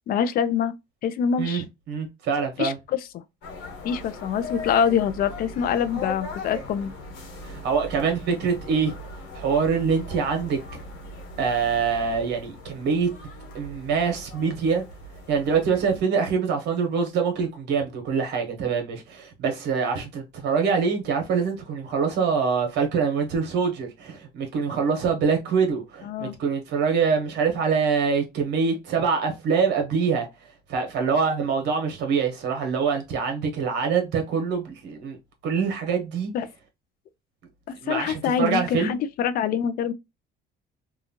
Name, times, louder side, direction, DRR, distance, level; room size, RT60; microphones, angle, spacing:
voice 1, 0.1-0.7 1.0-1.6 2.6-3.0 3.8-6.9 26.0-26.4 36.3-36.5 37.7-39.9, left 7 dB, 55° left, 0.4 m, -25 dB
voice 2, 1.4-2.8 7.4-8.9 9.3-10.8 11.4-13.1 13.5-14.8 15.3-30.3 30.7-35.2 35.4-36.3 37.8-39.0, right 5 dB, 70° right, 1.1 m, -25 dB
sound 1, 3.4-16.0, left 2 dB, 80° left, 1.3 m, -39 dB
2.8 x 2.3 x 2.7 m
cardioid pair, 120°, 18 cm